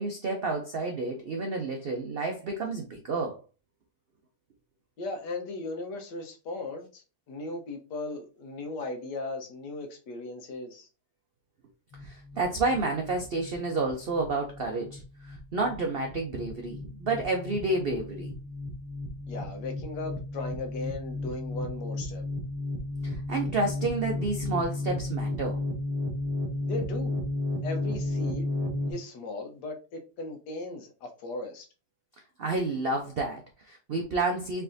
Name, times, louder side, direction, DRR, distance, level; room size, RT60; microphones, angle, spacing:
voice 1, 0.0-3.4 12.0-18.3 23.0-25.6 32.4-34.6, right 3 dB, 85° right, 0.5 m, -30 dB
voice 2, 5.0-10.9 19.3-22.2 26.7-27.2 27.6-28.5 28.9-31.7, left 2 dB, 75° left, 1.5 m, -37 dB
sound 1, 11.9-28.9, left 2 dB, 45° left, 0.4 m, -33 dB
4.5 x 3.3 x 2.5 m
omnidirectional pair, 1.8 m